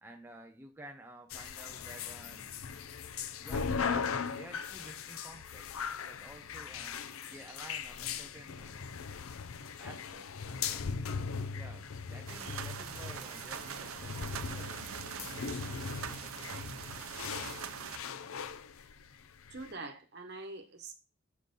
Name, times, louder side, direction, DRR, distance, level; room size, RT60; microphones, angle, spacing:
voice 1, 0.0-2.5 3.4-5.7 6.0-8.8 9.4-11.0 11.5-15.4 15.8-16.8, right 1 dB, 10° right, 0.4 m, -52 dB
sound 1, 1.3-19.7, left 6 dB, 85° left, 0.5 m, -39 dB
sound 2, 12.3-18.0, right 8 dB, 85° right, 0.5 m, -42 dB
voice 2, 19.5-20.9, right 3 dB, 50° right, 1.1 m, -44 dB
6.2 x 4.0 x 5.2 m
head